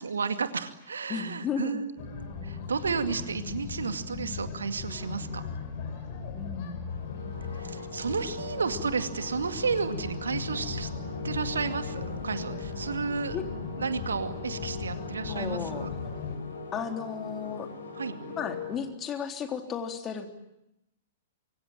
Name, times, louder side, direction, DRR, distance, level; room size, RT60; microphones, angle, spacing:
voice 1, 0.0-5.4 7.5-10.9 11.2-13.4 13.8-15.9 18.0-18.2, right 5 dB, 70° right, 9 dB, 2.2 m, -32 dB
voice 2, 1.1-1.8 6.3-6.9 13.3-13.4 15.3-15.9 16.7-17.7 18.4-20.3, left 7 dB, 20° left, 5 dB, 3.5 m, -34 dB
sound 1, 2.0-16.4, left 5 dB, 40° left, 5.8 m, -38 dB
sound 2, 6.9-18.8, left 3 dB, 65° left, 7.0 m, -40 dB
26.0 x 24.5 x 9.0 m, 0.88 s
figure-of-eight pair, 105°, 0 cm